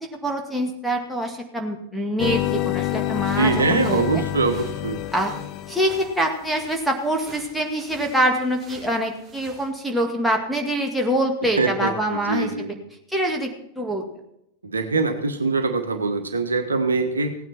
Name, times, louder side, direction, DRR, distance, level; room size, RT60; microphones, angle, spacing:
voice 1, 0.2-4.2 5.1-5.3 5.7-12.7 13.1-13.5 13.8-14.0, right 1 dB, ahead, 1 dB, 2.1 m, -25 dB
sound 1, 2.2-6.4, left 16 dB, 40° left, 0.4 m, -27 dB
sound 2, 3.2-9.7, right 3 dB, 20° right, 4.8 m, -48 dB
voice 2, 3.4-5.0 11.6-12.7 14.6-17.4, right 4 dB, 75° right, 6 dB, 1.3 m, -23 dB
16.5 x 9.4 x 4.3 m, 0.79 s
figure-of-eight pair, 90°, 0 cm